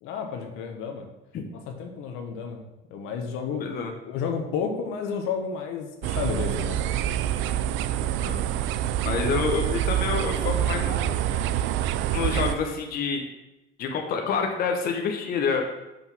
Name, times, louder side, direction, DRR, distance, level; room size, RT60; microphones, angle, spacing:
voice 1, 0.0-1.1 1.5-2.6 2.9-3.7 4.0-6.8, left 6 dB, 80° left, 4 dB, 1.2 m, -31 dB
voice 2, 3.6-3.9 8.2-8.4 9.0-11.2 12.1-13.2 13.8-15.6, left 5 dB, 45° left, 3 dB, 1.0 m, -27 dB
sound 1, 6.0-12.6, right 11 dB, 65° right, 0.4 m, -26 dB
5.9 x 5.2 x 5.9 m, 0.96 s
cardioid pair, 150°, 21 cm